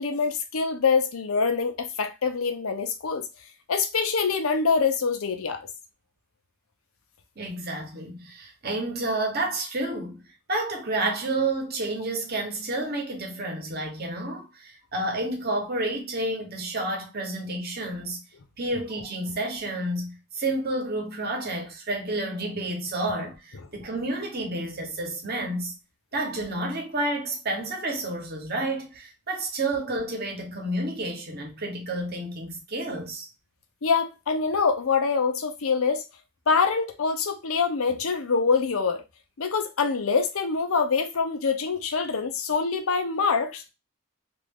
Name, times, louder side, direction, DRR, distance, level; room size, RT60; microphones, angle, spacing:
voice 1, 0.0-3.3 3.7-5.7 33.8-36.0 36.5-39.0 39.4-43.7, left 5 dB, 75° left, 0.6 m, -25 dB
voice 2, 7.4-10.2 10.5-18.2 18.6-25.7 26.1-33.3, right 2 dB, 45° right, 1.0 m, -30 dB
2.9 x 2.5 x 3.6 m
head